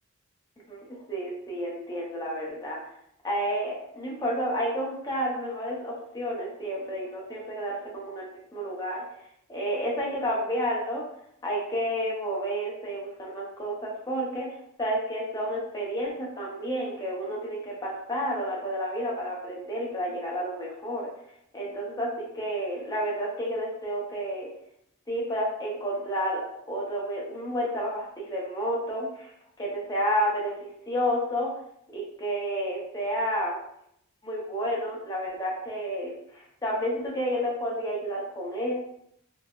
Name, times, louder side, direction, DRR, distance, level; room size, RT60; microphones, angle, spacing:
voice 1, 0.7-2.8 3.2-9.0 9.5-11.0 11.4-14.5 14.8-21.1 21.5-24.5 25.1-29.3 29.6-31.5 31.9-33.6 34.2-38.7, equal, 15° left, -4 dB, 0.7 m, -30 dB
3.7 x 2.0 x 2.4 m, 0.74 s
head